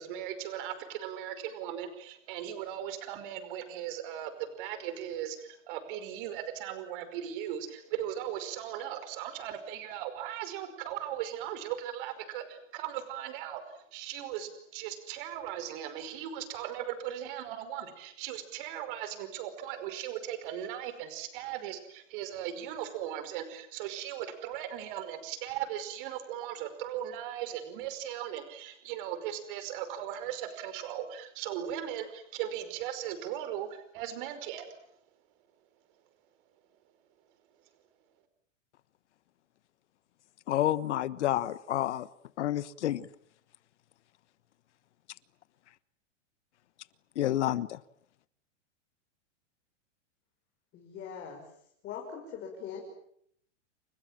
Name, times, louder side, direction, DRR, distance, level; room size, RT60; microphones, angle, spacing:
voice 1, 0.0-34.7, right 10 dB, 45° right, 11 dB, 5.3 m, -38 dB
voice 2, 40.5-42.1 42.4-43.1 47.2-47.8, left 13 dB, 70° left, 17 dB, 1.4 m, -29 dB
voice 3, 50.7-51.5 51.8-52.8, left 7 dB, 25° left, 1 dB, 6.4 m, -41 dB
29.5 x 26.5 x 7.5 m, 0.69 s
supercardioid pair, 155°, 37 cm